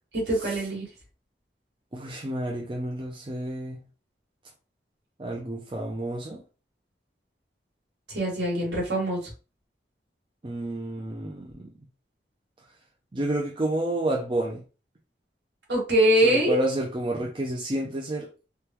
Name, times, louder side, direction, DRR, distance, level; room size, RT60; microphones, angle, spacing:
voice 1, 0.1-0.9 8.1-9.3 15.7-16.6, right 1 dB, 75° right, 1.8 m, -23 dB
voice 2, 1.9-3.8 5.2-6.4 10.4-11.7 13.1-14.6 16.2-18.3, right 1 dB, 25° right, 0.4 m, -30 dB
3.6 x 2.2 x 2.9 m
head